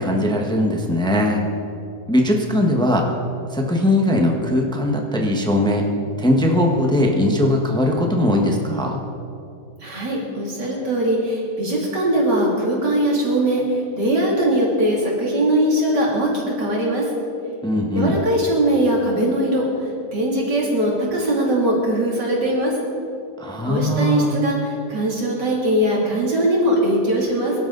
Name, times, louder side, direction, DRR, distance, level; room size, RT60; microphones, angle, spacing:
voice 1, 0.0-1.4 2.1-3.0 3.5-5.8 6.2-9.0 17.6-18.2 23.4-24.3, left 1 dB, 5° left, 1 dB, 1.2 m, -19 dB
voice 2, 9.8-17.1 17.9-19.6 20.1-22.7 23.6-27.5, right 1 dB, 90° right, -3 dB, 3.8 m, -20 dB
23.5 x 12.0 x 4.0 m, 2.7 s
omnidirectional pair, 1.8 m